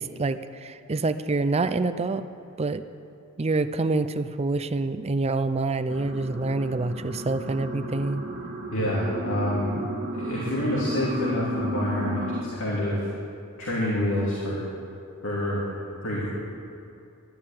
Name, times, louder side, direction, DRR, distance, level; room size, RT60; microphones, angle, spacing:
voice 1, 0.0-2.2 2.6-2.8 3.4-8.2, right 3 dB, 30° right, 12 dB, 0.5 m, -26 dB
sound 1, 5.9-12.4, equal, 55° right, 1.8 m, -33 dB
voice 2, 8.7-9.8 10.1-13.0 13.6-14.6 15.2-15.6 16.0-16.3, left 1 dB, 65° left, -6 dB, 2.7 m, -27 dB
12.5 x 11.5 x 8.7 m, 2.6 s
head